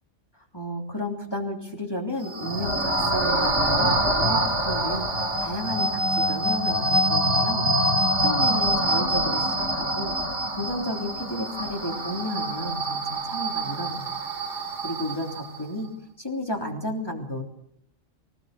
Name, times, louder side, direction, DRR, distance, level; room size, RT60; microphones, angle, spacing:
voice 1, 0.5-14.3 14.8-15.9 16.2-17.4, left 1 dB, 20° left, 1 dB, 3.2 m, -32 dB
sound 1, 2.2-15.6, right 1 dB, 70° right, 3.2 m, -25 dB
25.0 x 17.0 x 6.6 m, 0.72 s
omnidirectional pair, 1.3 m